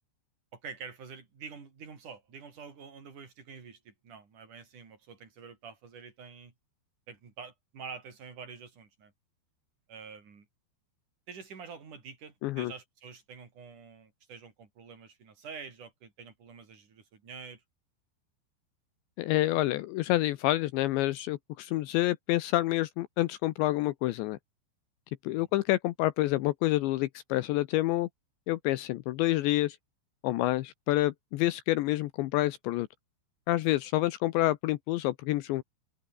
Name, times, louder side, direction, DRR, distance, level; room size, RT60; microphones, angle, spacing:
voice 1, 0.5-6.5 7.1-9.1 9.9-10.5 11.3-17.6 25.3-25.5, right 5 dB, 45° right, 5.8 m, -47 dB
voice 2, 19.2-24.4 25.2-28.1 28.5-29.8 30.2-32.9 33.5-35.6, left 16 dB, 80° left, 3.0 m, -28 dB
omnidirectional pair, 5.4 m